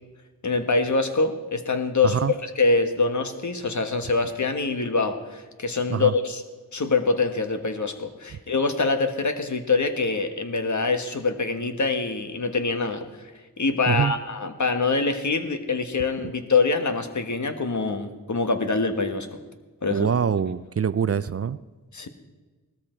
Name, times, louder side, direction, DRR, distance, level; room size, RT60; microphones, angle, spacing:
voice 1, 0.4-6.4 6.7-13.0 13.6-19.3 19.8-20.1 21.9-22.1, left 3 dB, 55° left, 7 dB, 1.6 m, -24 dB
voice 2, 19.9-21.6, right 7 dB, 40° right, 16 dB, 0.5 m, -24 dB
17.5 x 13.5 x 4.5 m, 1.2 s
cardioid pair, 55°, 36 cm